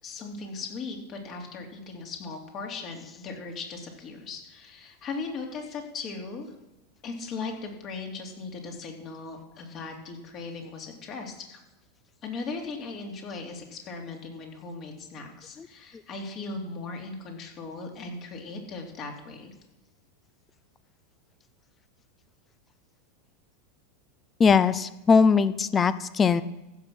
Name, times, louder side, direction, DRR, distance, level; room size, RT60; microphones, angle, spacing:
voice 1, 0.0-6.5 7.0-11.6 12.2-19.5, left 4 dB, 40° left, 2 dB, 3.1 m, -38 dB
voice 2, 24.4-26.4, left 5 dB, 25° left, 16 dB, 0.6 m, -20 dB
15.0 x 6.0 x 6.5 m, 1.0 s
hypercardioid pair, 95°, 0 cm